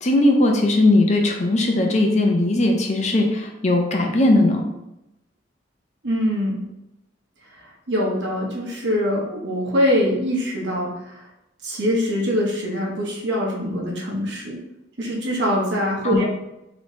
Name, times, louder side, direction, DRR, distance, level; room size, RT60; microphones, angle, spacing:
voice 1, 0.0-4.6 16.0-16.2, left 2 dB, 35° left, 2 dB, 0.6 m, -18 dB
voice 2, 6.0-6.6 7.9-11.3 11.6-14.6 15.0-16.2, equal, 70° right, -2 dB, 1.1 m, -23 dB
4.9 x 3.1 x 2.7 m, 0.90 s
head